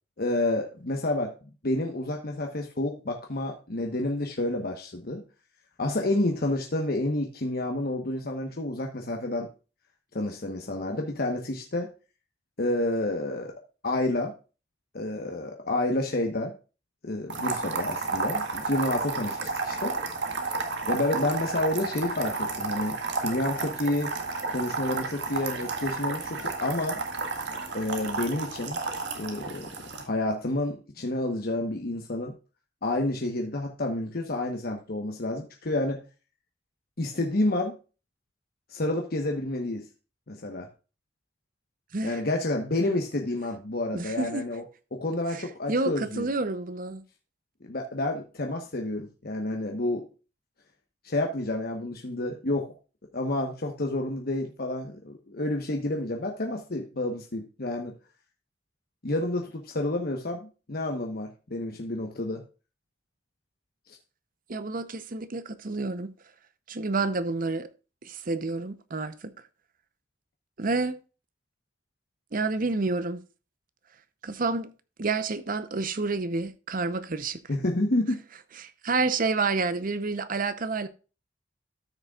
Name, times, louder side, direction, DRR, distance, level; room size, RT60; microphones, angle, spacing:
voice 1, 0.2-1.3 1.6-5.2 5.8-9.5 10.1-11.9 12.6-13.5 13.8-14.3 14.9-16.6 17.0-20.0 20.9-23.0 23.2-24.1 24.5-27.0 27.7-28.8 29.1-29.7 30.0-32.3 32.8-36.0 37.0-37.7 38.7-39.9 40.3-40.7 42.0-44.6 44.9-46.3 47.6-50.1 51.0-52.7 53.1-57.9 59.0-62.4 77.5-78.2, left 2 dB, 55° left, 1.1 m, -29 dB
sound 1, 17.3-30.0, right 3 dB, 70° right, 1.9 m, -32 dB
voice 2, 43.9-44.4 45.3-47.0 64.5-66.1 66.7-67.7 68.0-69.3 70.6-71.0 72.3-73.2 74.2-74.7 75.0-77.4 78.6-80.9, right 3 dB, 50° right, 0.8 m, -29 dB
13.5 x 6.4 x 2.4 m
head